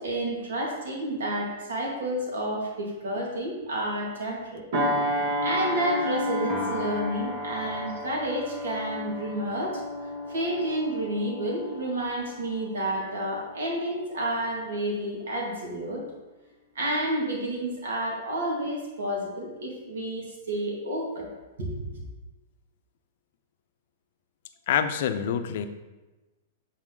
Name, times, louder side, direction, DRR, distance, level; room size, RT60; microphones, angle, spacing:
voice 1, 0.0-4.6 5.4-9.8 10.3-16.0 16.8-21.3 21.6-22.0, right 1 dB, 90° right, -2 dB, 2.1 m, -30 dB
sound 1, 4.7-13.6 14.0-14.3, equal, 60° right, 1.6 m, -32 dB
Piano, 6.5-12.9, left 3 dB, ahead, 0.8 m, -43 dB
voice 2, 24.7-25.7, left 8 dB, 65° left, 9 dB, 0.5 m, -26 dB
7.4 x 4.1 x 3.8 m, 1.2 s
hypercardioid pair, 140°, 0 cm